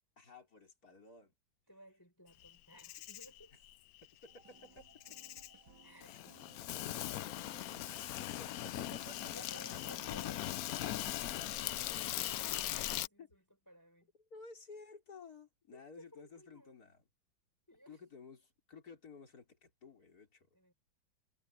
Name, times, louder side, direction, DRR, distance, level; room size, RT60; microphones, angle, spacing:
voice 1, 0.2-1.3 4.2-4.8 6.1-6.2 6.7-10.0 12.5-12.8 13.2-13.3 14.3-17.0 17.9-20.5, left 4 dB, 50° left, 4.6 m, -55 dB
voice 2, 1.7-3.5 5.8-6.2 8.4-8.6 9.3-14.1 15.7-16.8 17.7-18.0 20.5-20.7, equal, 10° left, 5.1 m, -59 dB
Insect, 2.4-13.1, left 14 dB, 85° left, 0.7 m, -40 dB
sound 1, 4.3-12.8, right 6 dB, 60° right, 3.3 m, -62 dB
omnidirectional pair, 2.1 m